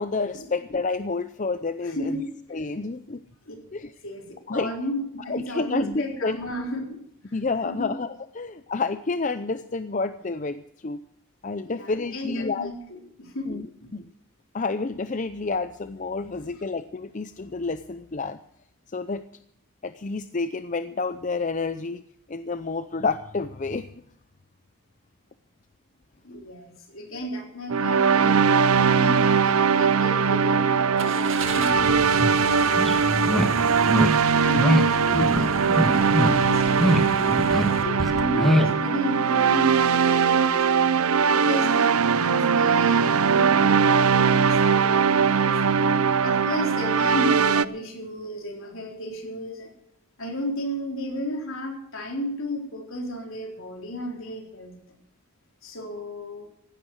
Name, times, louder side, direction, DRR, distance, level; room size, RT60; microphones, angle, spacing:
voice 1, 0.0-2.2 2.5-3.3 3.7-3.9 4.5-4.7 5.3-6.4 7.3-11.0 11.4-12.7 13.5-13.7 13.9-14.0 14.5-18.4 18.9-19.2 19.8-22.0 22.3-23.9 27.1-27.3, left 3 dB, 35° left, 11 dB, 0.5 m, -29 dB
voice 2, 2.0-2.3 3.5-3.6 4.0-7.0 7.7-7.9 11.6-13.9 26.2-31.2 31.5-33.8 34.4-40.7 41.3-45.6 46.2-49.7 50.2-54.8 55.6-56.5, equal, 70° left, 2 dB, 4.1 m, -33 dB
sound 1, 27.7-47.6, right 6 dB, 85° right, 0.7 m, -21 dB
Car / Engine starting, 31.0-37.8, right 3 dB, 65° right, 2.3 m, -32 dB
sound 2, 32.2-32.3 32.8-32.9 33.2-33.5 33.9-34.1 34.5-34.8 35.1-35.4 35.7-36.3 36.7-37.0 37.3-37.7 38.0-38.7, equal, ahead, 1.7 m, -22 dB
16.0 x 12.0 x 6.3 m, 0.74 s
head